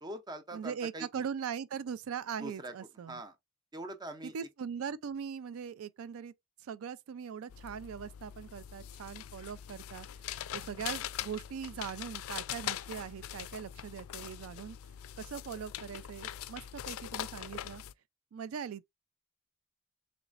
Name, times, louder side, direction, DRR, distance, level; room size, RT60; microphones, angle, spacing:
voice 1, 0.0-1.1 2.4-2.7 3.1-3.4 3.7-4.5, right 1 dB, 20° right, 0.5 m, -43 dB
voice 2, 0.5-3.2 4.2-6.3 6.6-10.1 10.5-14.8 15.2-17.8 18.3-18.8, right 7 dB, 80° right, 0.4 m, -40 dB
sound 1, 7.5-17.9, left 11 dB, 80° left, 0.3 m, -42 dB
4.0 x 3.2 x 2.4 m
head